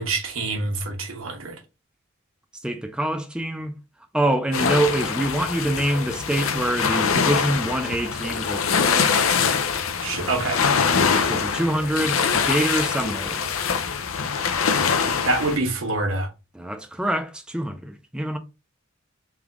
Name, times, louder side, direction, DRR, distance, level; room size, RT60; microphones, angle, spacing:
voice 1, 0.0-1.6 10.0-10.6 15.2-16.3, right 2 dB, 80° right, 1.1 m, -26 dB
voice 2, 2.6-3.7 4.1-9.1 10.2-10.4 11.1-13.6 16.5-18.4, right 1 dB, 5° right, 0.4 m, -25 dB
sound 1, 4.5-15.6, left 6 dB, 75° left, 0.6 m, -23 dB
3.5 x 3.5 x 3.6 m
head